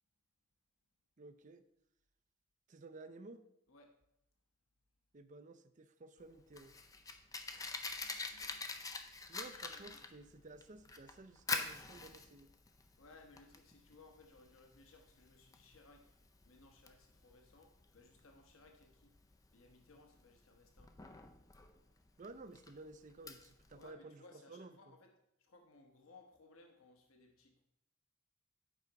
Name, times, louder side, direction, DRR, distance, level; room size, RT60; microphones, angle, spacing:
voice 1, 1.2-1.7 2.7-3.5 5.1-6.7 9.3-12.5 22.2-25.0, right 2 dB, 40° right, 9 dB, 0.5 m, -54 dB
Fire, 6.2-23.9, left 4 dB, 15° left, 0.5 m, -46 dB
voice 2, 7.5-8.7 9.1-10.1 13.0-16.1 16.4-19.1 19.5-21.0 23.7-25.1 25.4-27.6, left 3 dB, 85° left, 3 dB, 1.0 m, -63 dB
8.2 x 5.0 x 4.6 m, 0.81 s
head